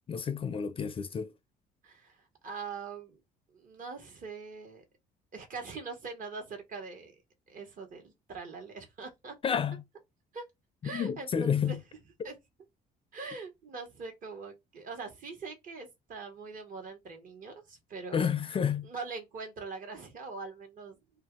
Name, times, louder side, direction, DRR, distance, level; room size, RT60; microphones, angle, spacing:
voice 1, 0.0-1.3 9.4-9.8 10.8-11.8 18.1-18.9, left 7 dB, 35° left, 0.4 m, -30 dB
voice 2, 1.8-3.2 3.5-4.8 5.3-7.2 7.5-9.3 10.3-10.5 10.8-11.8 12.2-12.3 13.1-18.3 18.9-21.0, right 4 dB, 50° right, 1.4 m, -42 dB
2.6 x 2.3 x 3.6 m
cardioid pair, 110°, 17 cm